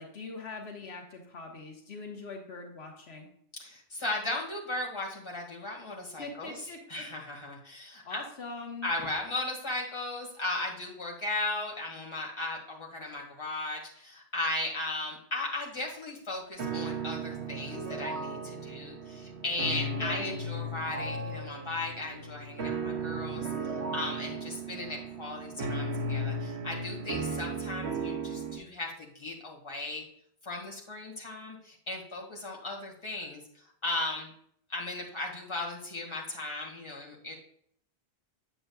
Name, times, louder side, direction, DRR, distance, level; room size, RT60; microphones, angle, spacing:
voice 1, 0.0-3.3 6.2-7.0 8.0-8.9 19.9-20.4, left 3 dB, 80° left, 2 dB, 1.4 m, -42 dB
voice 2, 3.6-6.5 6.9-8.2 8.8-23.5 23.9-30.0 30.4-33.4 33.8-34.3 34.7-37.3, left 2 dB, 25° left, -2 dB, 1.9 m, -36 dB
sound 1, 16.6-28.6, right 2 dB, 85° right, 1.2 m, -35 dB
7.8 x 7.7 x 2.3 m, 0.66 s
omnidirectional pair, 1.1 m